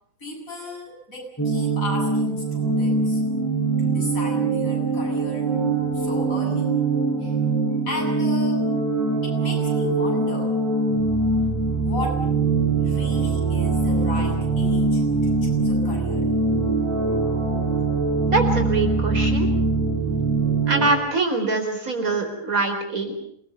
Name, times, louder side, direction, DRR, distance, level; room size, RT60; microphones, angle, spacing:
voice 1, 0.2-3.2 3.8-6.7 7.2-7.4 7.9-8.7 9.2-10.5 11.8-12.3 12.8-16.3, left 1 dB, 80° left, 0 dB, 8.4 m, -35 dB
sound 1, 1.4-20.9, right 3 dB, 10° left, 6.2 m, -22 dB
voice 2, 18.3-19.5 20.7-23.2, right 3 dB, 85° right, 5 dB, 4.7 m, -23 dB
27.5 x 20.5 x 7.0 m, 0.66 s
omnidirectional pair, 1.4 m